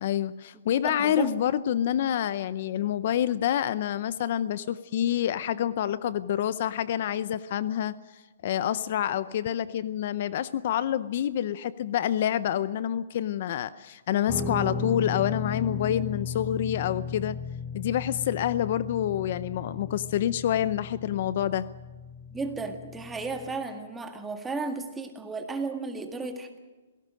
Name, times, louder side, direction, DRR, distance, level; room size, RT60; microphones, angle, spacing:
voice 1, 0.0-17.4 17.7-21.7, left 10 dB, 50° left, 16 dB, 0.7 m, -27 dB
voice 2, 0.8-1.3 22.3-26.6, right 3 dB, 10° right, 5 dB, 1.9 m, -34 dB
Guitar, 14.3-23.6, left 5 dB, 15° left, 1.5 m, -36 dB
26.5 x 17.5 x 6.4 m, 1.3 s
hypercardioid pair, 160°, 0 cm